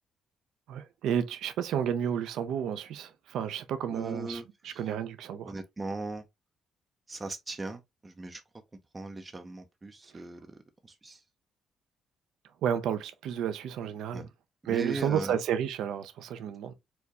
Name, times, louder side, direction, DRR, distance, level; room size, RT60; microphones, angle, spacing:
voice 1, 0.7-5.5 12.6-14.3 14.7-16.7, right 9 dB, 80° right, 0.5 m, -31 dB
voice 2, 3.9-4.9 5.4-6.2 7.1-8.4 8.9-11.2 14.1-14.3 14.6-15.4, right 2 dB, 20° right, 0.5 m, -39 dB
4.5 x 2.2 x 2.8 m
cardioid pair, 90°, 0 cm